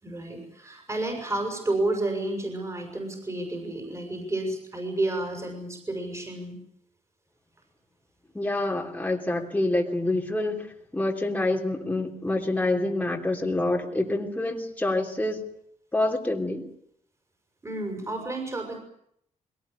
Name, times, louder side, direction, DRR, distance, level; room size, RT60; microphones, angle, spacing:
voice 1, 0.0-6.6 17.6-18.8, right 2 dB, 20° right, 6.1 m, -31 dB
voice 2, 8.3-10.7 10.9-15.4 15.9-16.7, left 2 dB, 10° left, 3.2 m, -27 dB
22.0 x 18.5 x 9.7 m
cardioid pair, 105°, 14 cm